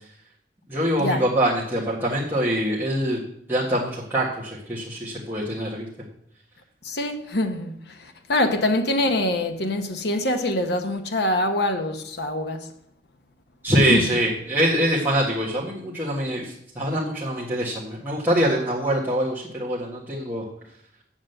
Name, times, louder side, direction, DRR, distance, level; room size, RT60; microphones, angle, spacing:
voice 1, 0.7-3.2 3.5-5.9 13.6-20.5, equal, 10° right, 1.6 m, -24 dB
voice 2, 6.8-12.7 13.9-14.1, left 1 dB, 65° left, 1.1 m, -24 dB
7.4 x 7.4 x 7.9 m
head